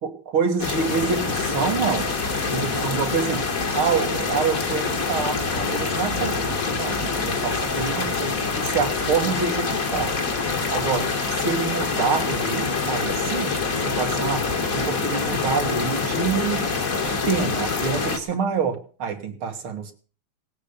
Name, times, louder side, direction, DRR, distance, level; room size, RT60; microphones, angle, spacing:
voice 1, 0.0-2.1 2.5-10.2 10.7-11.1 11.4-16.7 17.0-19.9, right 6 dB, 75° right, 4 dB, 2.8 m, -27 dB
sound 1, 0.6-18.2, left 4 dB, 40° left, 2.1 m, -25 dB
18.0 x 8.9 x 6.9 m, 0.40 s
omnidirectional pair, 2.3 m